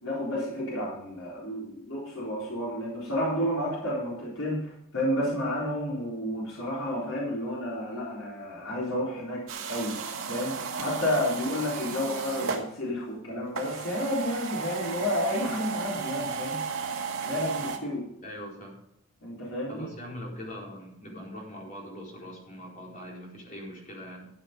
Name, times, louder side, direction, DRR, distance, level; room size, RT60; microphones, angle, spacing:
voice 1, 0.0-16.6 17.2-18.1 19.2-19.9, left 1 dB, 65° left, -5 dB, 3.9 m, -31 dB
sound 1, 9.5-12.6 13.5-17.8, right 5 dB, 70° right, 1.9 m, -34 dB
voice 2, 18.2-18.7 19.7-24.3, equal, 35° left, -2 dB, 4.2 m, -41 dB
13.5 x 7.7 x 5.2 m, 0.77 s
head